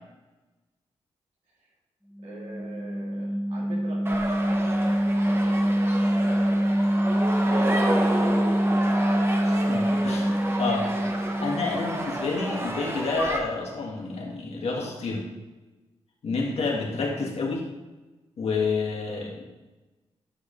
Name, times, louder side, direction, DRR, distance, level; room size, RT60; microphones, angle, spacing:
sound 1, 2.2-12.3, equal, ahead, 0.3 m, -25 dB
voice 1, 2.2-4.7 5.1-6.6 7.1-9.8 10.8-11.2 11.6-11.9 12.4-12.8, right 2 dB, 90° right, -5 dB, 3.3 m, -44 dB
sound 2, 4.0-13.4, right 1 dB, 20° right, 1.3 m, -31 dB
voice 2, 9.7-10.9 11.4-15.3 16.2-17.6 18.4-19.4, left 4 dB, 70° left, -2 dB, 2.3 m, -29 dB
11.5 x 6.4 x 3.4 m, 1.1 s
cardioid pair, 60°, 11 cm